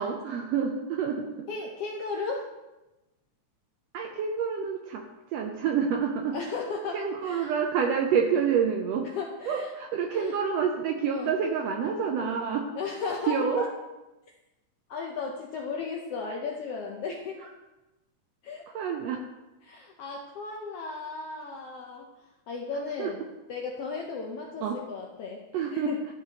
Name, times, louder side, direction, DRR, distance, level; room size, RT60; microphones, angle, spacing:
voice 1, 0.0-1.5 3.9-5.0 5.3-6.4 6.9-9.1 9.5-12.7 13.3-13.7 18.7-19.2 23.0-23.1 24.6-24.8 25.5-25.9, right 7 dB, 80° right, 3 dB, 1.5 m, -28 dB
voice 2, 1.5-2.5 6.3-7.5 9.1-9.7 10.1-10.4 11.1-11.3 12.8-13.7 14.9-17.4 18.4-18.6 19.6-22.1 22.5-23.2 23.5-26.0, left 4 dB, 75° left, 0 dB, 1.4 m, -35 dB
12.5 x 5.0 x 2.8 m, 1.0 s
omnidirectional pair, 3.5 m